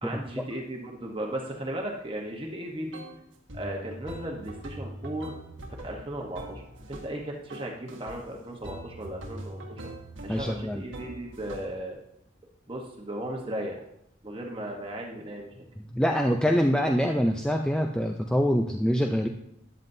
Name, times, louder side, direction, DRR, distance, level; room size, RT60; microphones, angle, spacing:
voice 1, 0.0-3.0 3.5-5.3 5.8-6.6 6.9-9.8 10.2-12.0 12.7-13.8 14.2-15.6, right 1 dB, 25° right, 0 dB, 1.1 m, -36 dB
sound 1, 2.9-3.2 3.5-7.2 7.5-8.2 8.6-11.8, right 1 dB, 90° right, 1.6 m, -42 dB
voice 2, 10.3-10.8 15.9-19.3, equal, 5° left, 2 dB, 0.4 m, -25 dB
13.0 x 9.3 x 2.7 m, 0.78 s
head